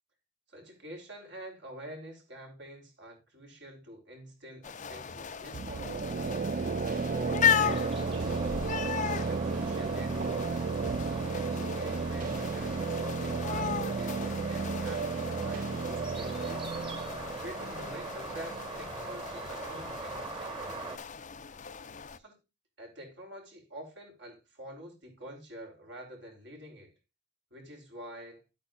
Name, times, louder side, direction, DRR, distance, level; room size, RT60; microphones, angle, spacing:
voice 1, 0.5-6.5 7.0-8.5 9.3-10.7 11.1-16.7 17.4-20.7 22.2-22.4 22.8-26.9 27.5-28.4, right 1 dB, 60° right, 4.1 m, -47 dB
sound 1, 4.6-22.2, left 8 dB, 40° left, 0.6 m, -36 dB
sound 2, 5.5-19.2, right 4 dB, 45° right, 0.4 m, -33 dB
sound 3, 7.5-21.0, right 3 dB, 25° right, 1.9 m, -42 dB
12.5 x 8.5 x 2.4 m
head